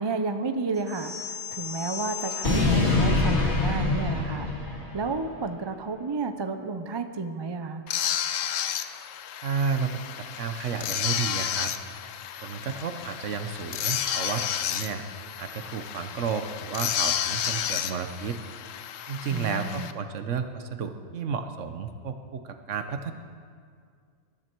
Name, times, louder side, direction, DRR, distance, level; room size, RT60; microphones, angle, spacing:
voice 1, 0.0-7.8 19.3-19.9, right 4 dB, 35° right, 8 dB, 0.4 m, -32 dB
sound 1, 0.9-5.2, left 3 dB, 60° left, 2.2 m, -26 dB
sound 2, 7.9-19.9, left 10 dB, 80° left, 1.0 m, -32 dB
voice 2, 9.4-9.9 10.2-11.7 12.4-15.0 15.4-18.4 19.1-23.1, right 6 dB, 70° right, 8 dB, 1.3 m, -32 dB
20.5 x 12.0 x 4.6 m, 2.2 s
omnidirectional pair, 1.3 m